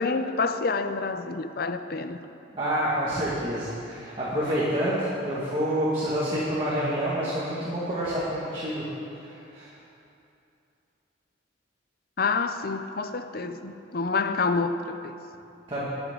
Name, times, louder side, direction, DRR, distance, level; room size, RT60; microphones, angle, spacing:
voice 1, 0.0-2.2 12.2-15.1, left 4 dB, 50° left, 9 dB, 0.5 m, -28 dB
voice 2, 2.5-8.9 9.2-9.7 15.7-15.9, equal, 25° right, -9 dB, 2.0 m, -28 dB
21.5 x 8.1 x 3.9 m, 2.8 s
head